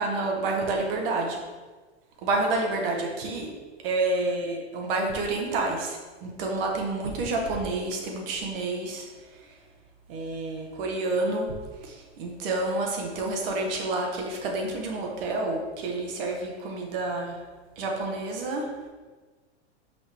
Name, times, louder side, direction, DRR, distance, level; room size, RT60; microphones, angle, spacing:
voice 1, 0.0-1.4 2.2-3.5 3.8-9.1 10.1-11.5 11.8-17.4 17.8-18.7, right 2 dB, 55° right, 1 dB, 1.3 m, -29 dB
5.5 x 5.1 x 3.5 m, 1.3 s
hypercardioid pair, 140°, 34 cm